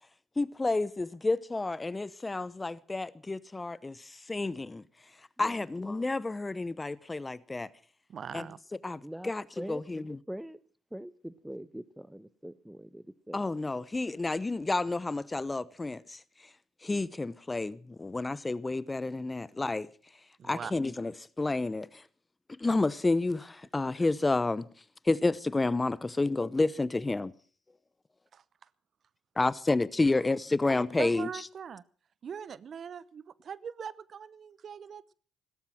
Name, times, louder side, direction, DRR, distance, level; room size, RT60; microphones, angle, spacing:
voice 1, 0.4-4.8 5.4-7.7 8.3-8.5 8.8-10.2 13.3-16.2 16.8-19.9 20.4-21.1 21.4-22.0 22.6-24.7 25.0-27.3 29.4-31.3, left 2 dB, 20° left, 0.8 m, -30 dB
voice 2, 8.1-8.6 20.4-20.7 28.3-28.4 31.0-31.8 32.2-35.1, right 7 dB, 55° right, 0.7 m, -41 dB
voice 3, 9.0-9.8 10.3-10.6 10.9-13.5, right 1 dB, 5° right, 1.0 m, -43 dB
16.5 x 13.0 x 6.1 m
hypercardioid pair, 55°, 0 cm